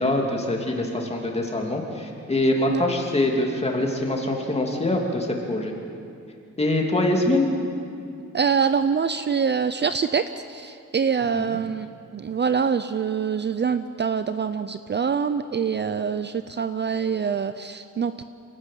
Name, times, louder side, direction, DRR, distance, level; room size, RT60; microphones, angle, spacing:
voice 1, 0.0-5.7 6.6-7.5 11.3-11.6, left 1 dB, 20° left, 1 dB, 2.9 m, -24 dB
voice 2, 8.2-11.9 12.1-18.2, right 6 dB, 35° right, 11 dB, 0.6 m, -25 dB
26.0 x 17.5 x 7.6 m, 2.5 s
wide cardioid pair, 145°, 30 cm